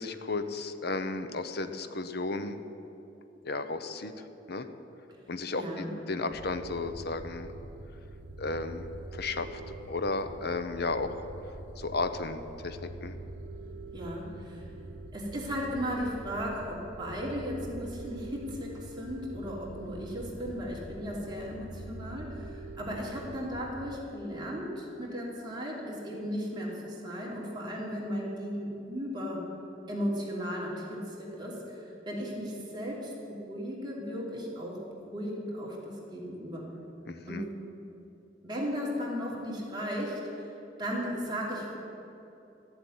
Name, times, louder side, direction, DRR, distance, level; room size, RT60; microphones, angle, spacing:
voice 1, 0.0-2.6 3.4-4.1 4.5-4.7 5.3-7.5 8.4-8.9 9.1-11.3 11.8-13.2 37.1-37.4, left 3 dB, 60° left, 9 dB, 0.9 m, -34 dB
voice 2, 5.5-5.9 13.9-14.7 15.1-29.5 29.9-31.8 32.0-36.7 37.3-37.5 38.4-40.5 40.8-41.8, equal, 25° right, -4 dB, 3.2 m, -36 dB
sound 1, 6.3-24.0, right 2 dB, 85° right, 1.0 m, -45 dB
13.5 x 8.1 x 9.5 m, 2.9 s
head